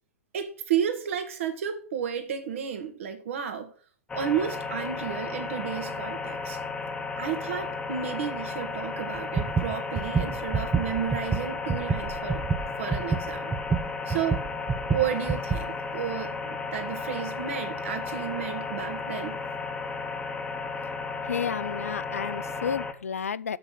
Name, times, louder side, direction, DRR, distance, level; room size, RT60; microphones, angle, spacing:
voice 1, 0.3-3.7 4.1-6.6 7.2-12.4 12.8-13.5 14.1-14.4 14.9-19.4, right 8 dB, 60° right, 1.6 m, -32 dB
sound 1, 4.1-22.9, left 4 dB, 10° left, 1.0 m, -34 dB
sound 2, 9.2-15.6, right 5 dB, 15° right, 0.5 m, -28 dB
voice 2, 21.3-23.6, left 7 dB, 75° left, 0.4 m, -31 dB
6.9 x 5.6 x 7.2 m
figure-of-eight pair, 105°, 8 cm